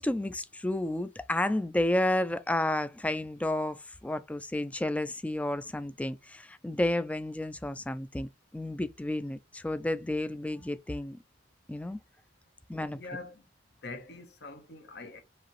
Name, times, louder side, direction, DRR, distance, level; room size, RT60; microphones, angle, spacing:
voice 1, 0.0-11.2 11.7-12.0 12.7-13.0, left 1 dB, 10° left, 0.3 m, -31 dB
voice 2, 12.9-13.5 13.8-15.2, left 3 dB, 65° left, 1.1 m, -44 dB
5.0 x 2.9 x 3.1 m
head